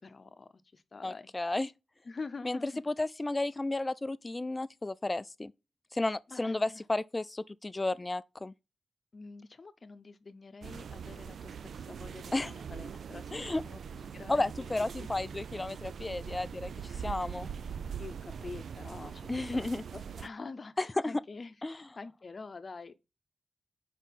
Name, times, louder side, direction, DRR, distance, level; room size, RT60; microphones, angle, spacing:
voice 1, 0.0-1.3 2.0-2.8 6.3-6.8 9.1-15.1 18.0-19.7 19.9-22.9, left 4 dB, 50° left, 0.8 m, -46 dB
voice 2, 1.0-1.7 2.4-5.5 5.9-8.5 12.3-12.5 13.3-13.6 14.3-16.7 17.0-17.5 19.3-19.8 20.8-21.1 21.6-21.8, left 2 dB, 25° left, 0.4 m, -33 dB
sound 1, 10.6-20.3, right 7 dB, 85° right, 0.3 m, -42 dB
5.5 x 5.1 x 5.9 m
cardioid pair, 65°, 0 cm